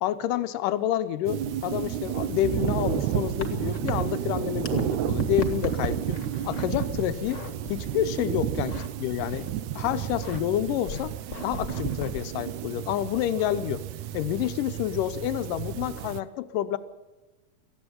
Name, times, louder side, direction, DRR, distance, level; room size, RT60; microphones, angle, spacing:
voice 1, 0.0-6.2 6.4-7.4 7.7-8.7 9.0-9.5 9.8-11.1 11.4-13.8 14.1-16.8, left 12 dB, 85° left, 11 dB, 2.5 m, -28 dB
sound 1, 1.3-16.2, right 11 dB, 75° right, 2.1 m, -31 dB
sound 2, 2.2-4.8 5.1-8.9 9.2-9.6 10.0-10.4 10.9-12.2, left 3 dB, 30° left, 1.5 m, -39 dB
19.0 x 15.0 x 9.7 m, 1.1 s
omnidirectional pair, 3.7 m